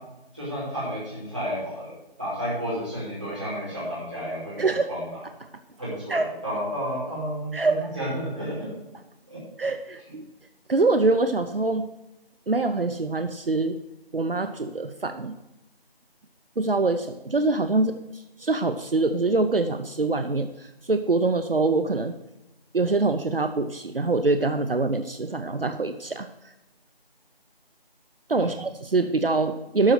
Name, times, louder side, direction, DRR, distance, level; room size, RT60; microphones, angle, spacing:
voice 1, 0.3-1.9 2.2-5.0 5.8-8.7 9.3-9.4 28.4-28.5, equal, 10° right, -14 dB, 2.8 m, -31 dB
voice 2, 4.6-4.9 6.1-6.3 7.5-7.9 9.6-10.3 10.7-11.9 12.5-13.8 14.1-15.4 16.6-22.2 22.7-26.3 28.3-29.9, right 3 dB, 65° right, 8 dB, 0.8 m, -24 dB
12.5 x 4.3 x 7.7 m, 0.92 s
figure-of-eight pair, 180°, 31 cm